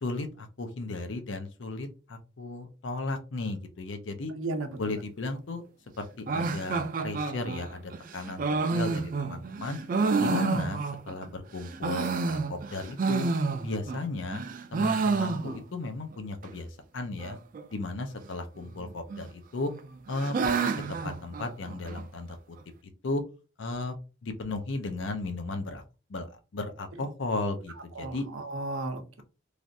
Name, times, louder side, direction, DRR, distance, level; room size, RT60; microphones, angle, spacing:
voice 1, 0.0-4.3 4.8-5.6 6.0-9.8 10.2-13.2 13.6-14.4 14.7-17.4 17.7-19.7 20.1-22.6 23.0-23.2 23.6-24.0 24.2-25.8 26.1-28.3, left 2 dB, 65° left, 7 dB, 0.5 m, -35 dB
voice 2, 4.4-4.7 10.2-10.4 28.0-29.2, right 2 dB, 85° right, 7 dB, 0.6 m, -34 dB
sound 1, 6.3-11.3 11.6-14.0 14.3-15.9 16.1-16.2 16.4-16.5 17.2-17.6 18.6-19.2 19.6-22.0, right 4 dB, 40° right, 0.3 m, -29 dB
3.2 x 2.4 x 2.6 m, 0.32 s
head